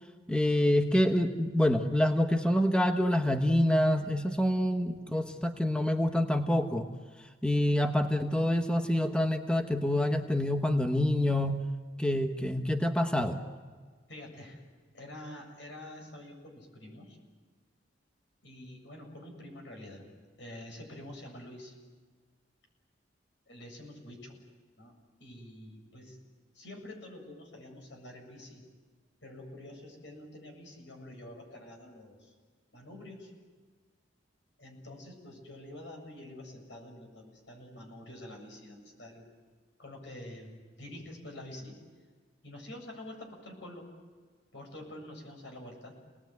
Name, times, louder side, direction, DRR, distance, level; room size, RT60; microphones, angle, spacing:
voice 1, 0.3-6.9 7.4-11.6 12.0-13.4, left 1 dB, 5° left, 5 dB, 1.2 m, -27 dB
voice 2, 14.1-14.6 14.9-17.2 18.4-20.0 20.4-21.8 23.5-24.4 24.8-26.2 26.5-28.6 29.2-32.3 32.7-33.3 34.6-39.3 39.8-40.5 40.8-41.7 42.4-43.9 44.5-46.0, left 1 dB, 75° left, 2 dB, 7.6 m, -47 dB
29.5 x 20.0 x 9.4 m, 1.5 s
head